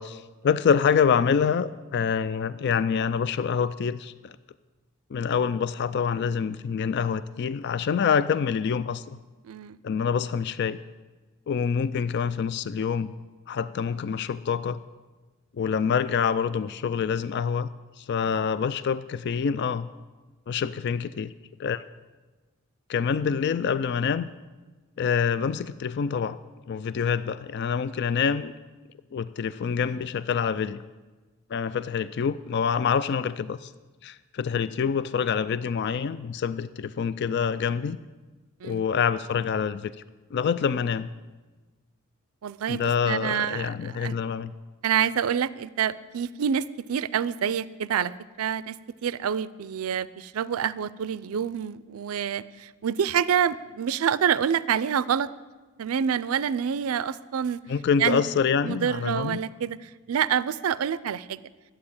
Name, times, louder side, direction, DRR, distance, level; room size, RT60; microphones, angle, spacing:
voice 1, 0.0-4.3 5.1-9.2 9.8-10.8 11.5-13.1 13.5-14.8 15.6-17.7 18.0-19.9 20.5-21.3 21.6-21.8 22.9-24.3 25.0-26.4 26.7-28.5 29.1-30.8 31.5-33.7 34.0-38.0 38.6-39.9 40.3-41.1 42.7-44.5 57.7-59.4, left 6 dB, 55° left, 15 dB, 0.4 m, -26 dB
voice 2, 9.4-9.8 38.6-38.8 42.4-43.7 44.0-44.1 44.8-48.1 48.4-48.8 49.0-55.3 55.8-57.6 58.0-58.2 58.6-61.4, right 8 dB, 85° right, 18 dB, 0.4 m, -27 dB
12.0 x 8.5 x 8.6 m, 1.3 s
head